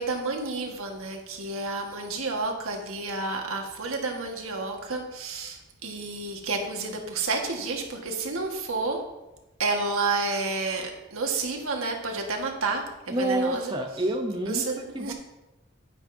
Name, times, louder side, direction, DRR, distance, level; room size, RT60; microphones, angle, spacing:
voice 1, 0.0-9.0 9.6-13.7 14.4-15.1, right 3 dB, 80° right, 2 dB, 1.5 m, -30 dB
voice 2, 13.1-14.6 14.9-15.1, right 1 dB, 20° right, 2 dB, 0.6 m, -28 dB
9.8 x 9.8 x 2.7 m, 0.99 s
head